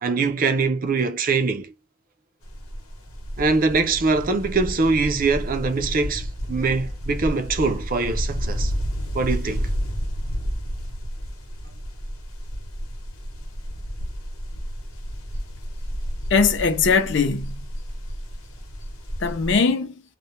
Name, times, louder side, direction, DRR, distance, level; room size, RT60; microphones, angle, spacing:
voice 1, 0.0-1.7 3.4-8.7 9.1-9.7, right 4 dB, 40° right, 0.5 m, -23 dB
sound 1, 2.4-19.6, equal, 80° left, 0.9 m, -31 dB
voice 2, 16.3-17.7 19.2-20.0, left 5 dB, 55° left, 0.4 m, -21 dB
2.1 x 2.1 x 2.9 m
head